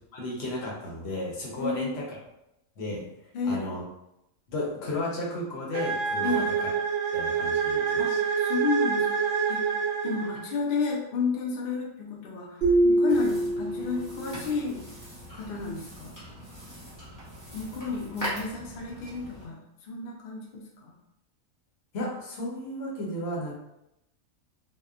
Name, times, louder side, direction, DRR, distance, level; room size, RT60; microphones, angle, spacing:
voice 1, 0.1-2.0 2.8-3.0 3.4-3.8 4.5-6.7 7.1-8.2 21.9-23.6, left 1 dB, 55° left, -3 dB, 0.9 m, -33 dB
voice 2, 1.6-2.0 3.3-3.7 6.2-6.6 8.0-9.8 10.0-14.8 15.3-16.1 17.5-21.0, left 4 dB, 80° left, -1 dB, 0.4 m, -32 dB
sound 1, 5.7-10.6, right 6 dB, 85° right, 1.1 m, -27 dB
sound 2, 12.6-14.3, right 1 dB, 50° right, 1.1 m, -24 dB
sound 3, 13.1-19.4, equal, 20° left, 0.6 m, -41 dB
2.8 x 2.1 x 2.3 m, 0.84 s
omnidirectional pair, 1.5 m